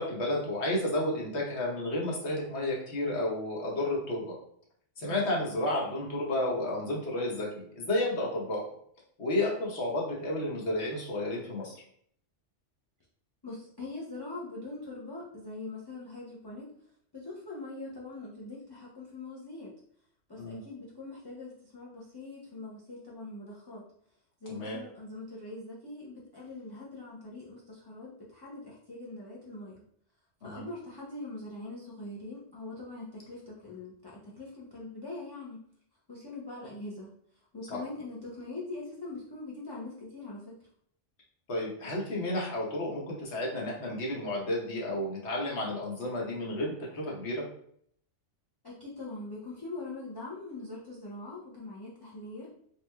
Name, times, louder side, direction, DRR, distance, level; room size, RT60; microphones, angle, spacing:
voice 1, 0.0-4.3 5.0-8.7 9.2-11.8 20.4-20.6 24.5-24.8 30.4-30.6 37.7-37.8 41.5-47.4, left 1 dB, 65° left, -3 dB, 1.2 m, -32 dB
voice 2, 13.4-16.7 17.1-19.7 20.3-23.8 24.4-29.8 30.4-35.6 36.1-37.1 37.5-40.6 48.6-52.5, left 2 dB, 30° left, -4 dB, 0.5 m, -42 dB
3.4 x 3.1 x 2.2 m, 0.64 s
omnidirectional pair, 1.3 m